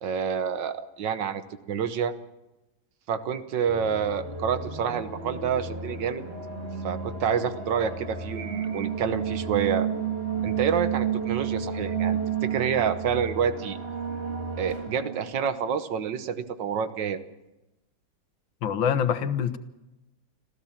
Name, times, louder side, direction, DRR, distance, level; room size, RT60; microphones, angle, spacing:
voice 1, 0.0-1.4 1.7-2.1 3.1-6.2 6.8-9.9 10.4-13.8 14.6-17.2, right 7 dB, 70° right, 1.7 m, -28 dB
sound 1, 3.7-15.7, right 7 dB, 30° right, 2.1 m, -32 dB
voice 2, 18.6-19.6, left 8 dB, 90° left, 1.9 m, -25 dB
26.5 x 15.0 x 7.3 m
omnidirectional pair, 2.1 m